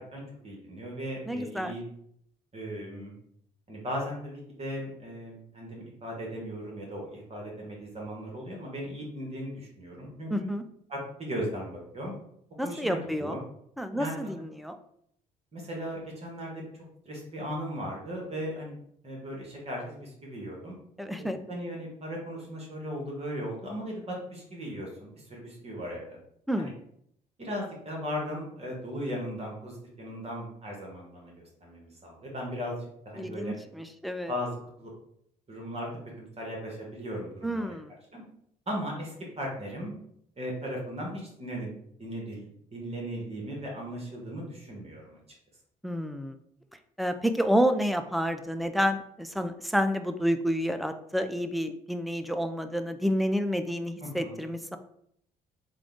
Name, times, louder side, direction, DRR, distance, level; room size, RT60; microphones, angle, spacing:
voice 1, 0.0-1.8 2.5-3.1 3.7-10.5 10.9-12.1 12.6-13.4 14.0-14.2 15.5-16.6 17.0-18.8 19.0-20.8 21.5-26.2 26.6-26.7 27.4-31.3 31.6-32.8 33.0-33.6 34.3-34.9 35.5-35.9 36.2-37.7 38.1-38.2 38.7-39.9 40.4-41.7 42.0-45.2 54.2-54.4, equal, 30° right, -2 dB, 1.4 m, -37 dB
voice 2, 1.3-1.8 10.3-10.6 12.6-13.4 13.8-14.8 21.0-21.4 26.5-26.7 33.2-34.3 37.4-37.9 45.8-46.4 47.0-54.8, equal, ahead, 8 dB, 0.3 m, -29 dB
3.7 x 2.3 x 3.5 m, 0.69 s
hypercardioid pair, 50°, 20 cm